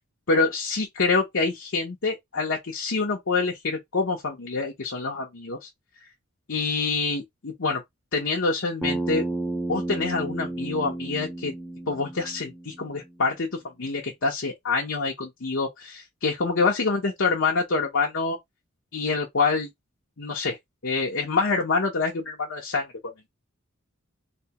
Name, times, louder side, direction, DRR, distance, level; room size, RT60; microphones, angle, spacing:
voice 1, 0.3-5.7 6.5-7.8 8.1-9.2 9.7-11.5 11.9-13.5 13.8-18.4 18.9-19.7 20.2-20.6 20.8-22.9, left 4 dB, 65° left, 0.9 m, -26 dB
Bass guitar, 8.8-13.1, right 2 dB, 5° right, 0.7 m, -32 dB
3.4 x 2.9 x 2.9 m
head